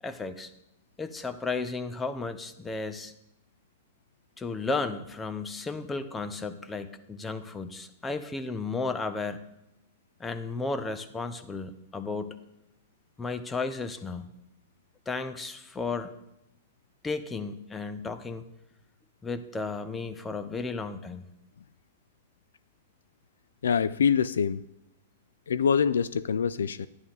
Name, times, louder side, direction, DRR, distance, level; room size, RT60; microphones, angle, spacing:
voice 1, 0.0-0.5 1.0-3.1 4.4-9.4 10.2-12.4 13.2-14.3 15.1-16.1 17.0-18.5 19.2-21.2, left 3 dB, 15° left, 11 dB, 0.9 m, -34 dB
voice 2, 23.6-24.6 25.5-26.9, left 7 dB, 85° left, 17 dB, 0.4 m, -25 dB
11.0 x 10.5 x 3.9 m, 0.87 s
hypercardioid pair, 120°, 0 cm